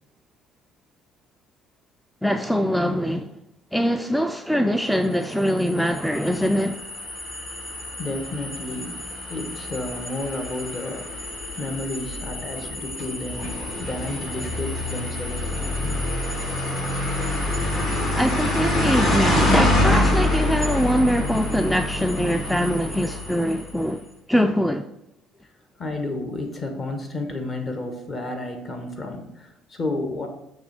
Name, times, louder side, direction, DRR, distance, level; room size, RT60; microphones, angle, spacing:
voice 1, 2.2-3.3 3.7-6.8 18.1-24.9, equal, ahead, 0.3 m, -23 dB
sound 1, 5.3-23.8, left 1 dB, 55° left, 2.4 m, -26 dB
voice 2, 8.0-9.0 9.3-11.3 11.6-13.5 13.8-16.0 25.8-30.3, left 2 dB, 40° left, 1.3 m, -31 dB
6.3 x 3.2 x 5.0 m
hypercardioid pair, 65°, 0 cm